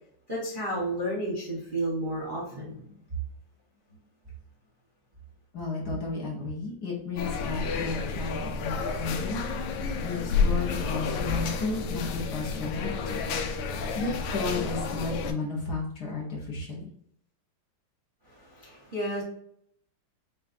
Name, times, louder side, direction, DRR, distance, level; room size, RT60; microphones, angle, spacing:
voice 1, 0.3-2.8 18.4-19.2, right 1 dB, 30° right, -5 dB, 0.9 m, -32 dB
voice 2, 5.5-9.4 10.0-13.3 13.9-16.8, left 3 dB, 55° left, -3 dB, 1.4 m, -33 dB
sound 1, 7.2-15.3, left 5 dB, 90° left, 1.6 m, -30 dB
6.8 x 2.5 x 2.6 m, 0.70 s
omnidirectional pair, 2.4 m